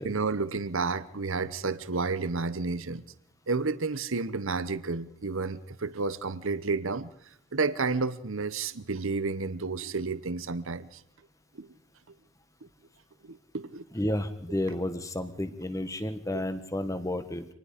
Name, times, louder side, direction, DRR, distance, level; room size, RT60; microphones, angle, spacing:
voice 1, 0.0-3.0 3.5-7.1 7.5-11.0 11.5-11.7 13.3-13.8 16.3-16.4, right 4 dB, 65° right, 0.9 m, -31 dB
voice 2, 13.9-17.4, left 1 dB, 15° left, 1.4 m, -31 dB
26.0 x 19.5 x 5.1 m
head